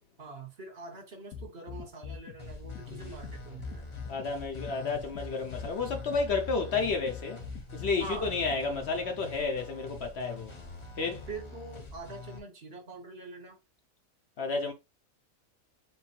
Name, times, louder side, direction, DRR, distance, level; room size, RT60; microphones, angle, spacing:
voice 1, 0.2-3.9 8.0-8.3 11.3-13.6, right 3 dB, 50° right, 1.2 m, -44 dB
sound 1, 1.3-8.9, left 7 dB, 90° left, 1.3 m, -43 dB
sound 2, 2.4-12.4, left 2 dB, 25° left, 0.8 m, -45 dB
voice 2, 4.1-7.4 7.7-10.5 11.0-11.2 14.4-14.7, left 4 dB, 60° left, 0.9 m, -31 dB
3.7 x 2.4 x 4.3 m
omnidirectional pair, 1.4 m